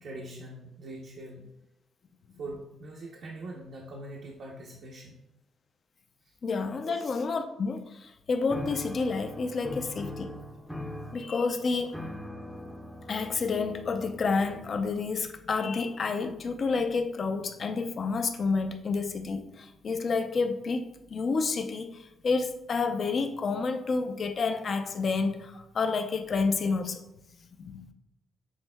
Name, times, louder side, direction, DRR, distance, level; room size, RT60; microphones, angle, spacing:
voice 1, 0.0-1.5 2.4-5.2 6.2-6.3 6.8-7.0 11.7-11.8, right 2 dB, 60° right, -2 dB, 0.7 m, -42 dB
voice 2, 6.4-10.3 11.1-12.0 13.1-27.0 27.6-27.8, left 4 dB, 45° left, 7 dB, 0.5 m, -29 dB
sound 1, 8.5-15.0, left 1 dB, ahead, 0.6 m, -41 dB
6.3 x 3.4 x 2.2 m, 0.90 s
cardioid pair, 90°, 0 cm